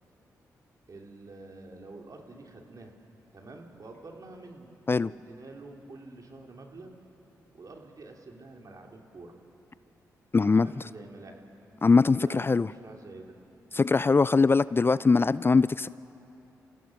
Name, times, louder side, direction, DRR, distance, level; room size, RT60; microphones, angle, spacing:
voice 1, 0.9-3.0 3.3-4.7 5.1-6.9 7.5-9.3 10.4-11.4 12.2-13.4, right 2 dB, 50° right, 1 dB, 2.9 m, -47 dB
voice 2, 10.3-10.7 11.8-12.7 13.7-15.9, left 4 dB, 30° left, 18 dB, 0.4 m, -21 dB
29.0 x 16.0 x 6.4 m, 2.9 s
hypercardioid pair, 40°, 8 cm